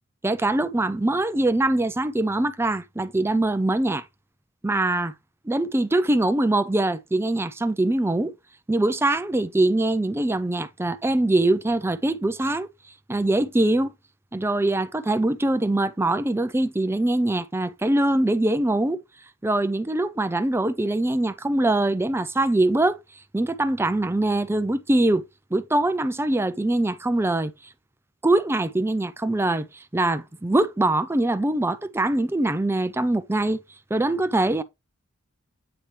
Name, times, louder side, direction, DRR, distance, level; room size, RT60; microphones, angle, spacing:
voice 1, 0.2-4.0 4.6-5.1 5.5-8.3 8.7-12.7 13.1-13.9 14.3-19.0 19.4-23.0 23.3-25.2 25.5-27.5 28.2-33.6 33.9-34.6, right 2 dB, 10° right, 0.4 m, -23 dB
8.8 x 3.3 x 4.4 m
head